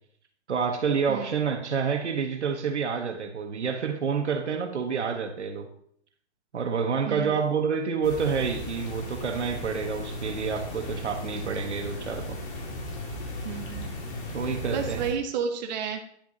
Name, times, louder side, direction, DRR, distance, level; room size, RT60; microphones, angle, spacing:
voice 1, 0.5-5.7 6.5-12.4 14.3-15.0, right 6 dB, 75° right, 6 dB, 1.3 m, -28 dB
voice 2, 7.1-7.4 13.4-13.9 14.4-16.0, right 7 dB, 40° right, 4 dB, 0.8 m, -32 dB
sound 1, 8.0-15.1, left 1 dB, 45° left, 2.3 m, -36 dB
10.0 x 6.1 x 2.8 m, 0.65 s
hypercardioid pair, 135°, 35 cm